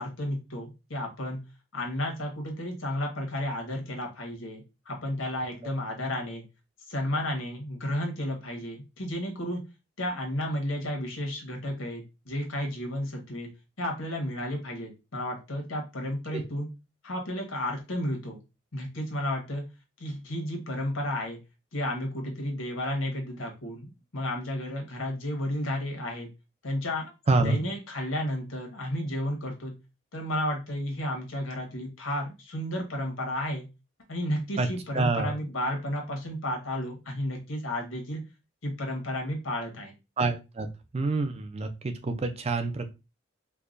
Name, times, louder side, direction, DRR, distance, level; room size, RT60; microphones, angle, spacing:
voice 1, 0.0-1.4 1.7-6.4 6.9-9.6 10.0-13.5 13.8-16.7 17.0-18.4 18.7-19.6 20.0-21.4 21.7-26.3 26.6-27.1 27.4-29.7 30.1-33.6 34.1-38.2 38.6-39.9, left 1 dB, 90° left, 1 dB, 1.2 m, -32 dB
voice 2, 27.3-27.6 34.6-34.7 34.9-35.3 40.2-40.7 40.9-42.9, right 3 dB, 30° right, 7 dB, 0.4 m, -27 dB
4.6 x 2.3 x 2.5 m, 0.27 s
head